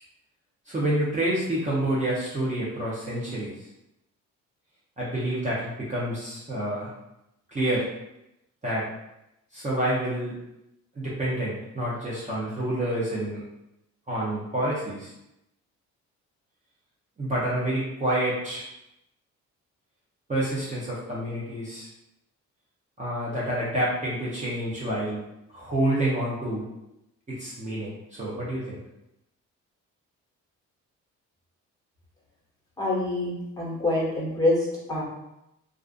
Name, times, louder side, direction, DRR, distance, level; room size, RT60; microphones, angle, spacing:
voice 1, 0.7-3.5 5.0-6.9 7.5-7.9 8.6-8.9 9.5-10.3 10.9-13.4 14.1-15.1 17.2-18.7 20.3-21.9 23.0-25.2 25.5-26.6 27.3-28.8, right 1 dB, 25° right, -8 dB, 0.7 m, -28 dB
voice 2, 32.8-35.0, left 2 dB, 10° left, -6 dB, 1.1 m, -26 dB
2.4 x 2.3 x 2.4 m, 0.87 s
cardioid pair, 90°, 30 cm